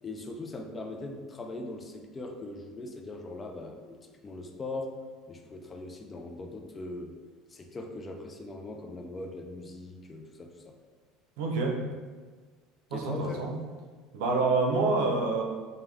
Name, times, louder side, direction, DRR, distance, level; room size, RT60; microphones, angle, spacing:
voice 1, 0.0-4.0 4.2-4.9 5.3-7.2 7.5-10.7 12.9-13.4, left 2 dB, 20° left, 4 dB, 0.3 m, -40 dB
voice 2, 11.4-11.8 12.9-13.5 14.1-15.4, right 3 dB, 80° right, 2 dB, 0.6 m, -27 dB
5.2 x 2.1 x 3.3 m, 1.5 s
cardioid pair, 160°, 0 cm